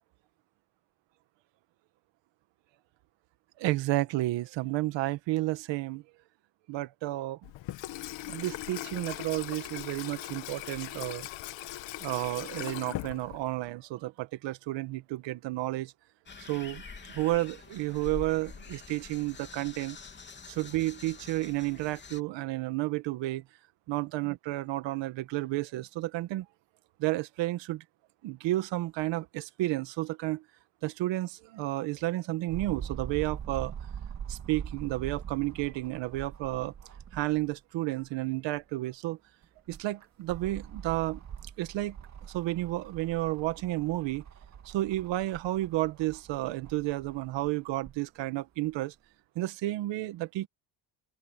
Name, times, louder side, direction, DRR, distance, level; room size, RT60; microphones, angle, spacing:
voice 1, 3.6-6.0 6.7-7.5 8.3-11.3 12.0-15.9 16.4-16.8 17.1-20.0 20.5-23.4 23.9-26.4 27.0-27.8 28.2-30.4 30.8-33.7 34.3-36.7 37.1-39.2 39.7-41.2 41.6-42.0 42.2-44.2 44.6-48.9 49.3-50.5, right 17 dB, 80° right, 1.5 m, -31 dB
Water tap faucet / Sink (filling or washing), 7.4-13.7, left 15 dB, 85° left, 2.1 m, -40 dB
sound 1, 16.3-22.2, left 5 dB, 25° left, 3.4 m, -46 dB
sound 2, 32.5-37.5 38.0-38.1 39.4-48.0 48.7-48.8, right 8 dB, 40° right, 2.6 m, -43 dB
open air
cardioid pair, 155°, 43 cm